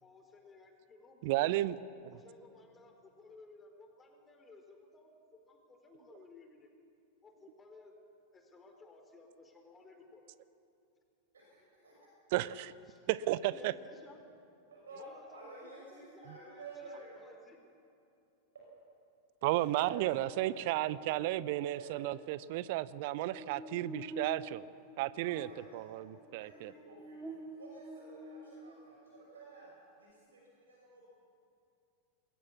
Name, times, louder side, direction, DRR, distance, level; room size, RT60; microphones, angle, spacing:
voice 1, 0.0-1.7 2.1-6.7 7.2-7.9 8.3-10.2 12.0-12.1 12.9-14.2 14.9-17.6, left 3 dB, 20° left, 4 dB, 4.0 m, -57 dB
voice 2, 1.2-1.8 12.3-12.5 13.1-13.7 19.4-24.7 25.0-26.7, right 16 dB, 50° right, 18 dB, 0.7 m, -33 dB
voice 3, 11.3-11.9 14.7-17.2 18.5-18.7 19.4-20.7 21.6-22.3 22.7-22.8 25.2-25.9 26.4-29.7 30.0-31.2, right 2 dB, 70° right, -3 dB, 6.2 m, -52 dB
Buzz, 19.8-29.3, right 1 dB, 10° right, 2.9 m, -50 dB
27.5 x 21.0 x 7.2 m, 2.6 s
figure-of-eight pair, 90°, 0 cm